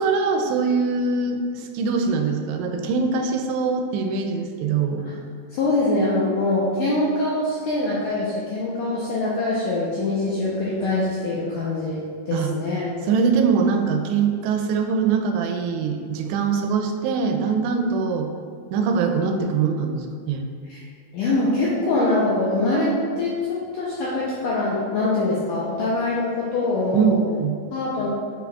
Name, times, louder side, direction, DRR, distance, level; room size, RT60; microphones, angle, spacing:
voice 1, 0.0-5.0 12.3-12.5 13.1-18.3 18.7-20.5 26.9-27.6, right 5 dB, 90° right, 4 dB, 2.8 m, -23 dB
voice 2, 5.5-12.9 20.7-20.8 21.1-27.2 27.7-28.1, left 2 dB, 80° left, -6 dB, 1.9 m, -23 dB
7.5 x 6.0 x 2.3 m, 2.1 s
omnidirectional pair, 4.8 m